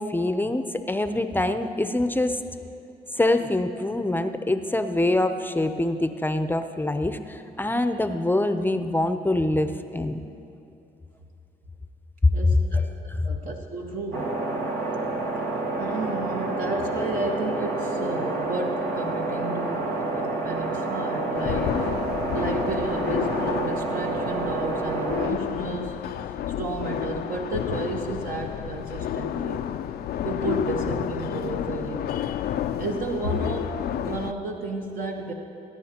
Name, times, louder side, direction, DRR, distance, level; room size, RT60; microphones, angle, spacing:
voice 1, 0.0-2.4 3.1-10.2 12.2-12.3 13.1-13.2, left 2 dB, 10° left, 9 dB, 0.6 m, -24 dB
voice 2, 12.3-12.9 13.2-14.4 15.8-21.9 22.3-25.9 26.6-29.7 30.2-32.1 32.8-35.3, right 2 dB, 60° right, 0 dB, 1.1 m, -32 dB
sound 1, 14.1-25.3, right 2 dB, 80° right, 1.4 m, -29 dB
sound 2, 21.3-34.3, left 10 dB, 75° left, 0.4 m, -30 dB
21.0 x 9.8 x 2.9 m, 2.7 s
supercardioid pair, 65°, 16 cm